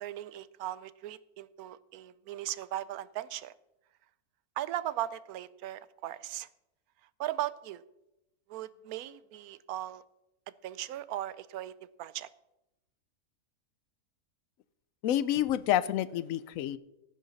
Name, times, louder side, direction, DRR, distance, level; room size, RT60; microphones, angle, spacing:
voice 1, 0.0-3.5 4.6-6.5 7.2-7.8 8.5-10.0 10.6-12.3, right 13 dB, 85° right, 17 dB, 1.1 m, -38 dB
voice 2, 15.0-16.8, left 12 dB, 70° left, 17 dB, 1.0 m, -28 dB
16.5 x 9.7 x 4.1 m, 0.93 s
omnidirectional pair, 1.5 m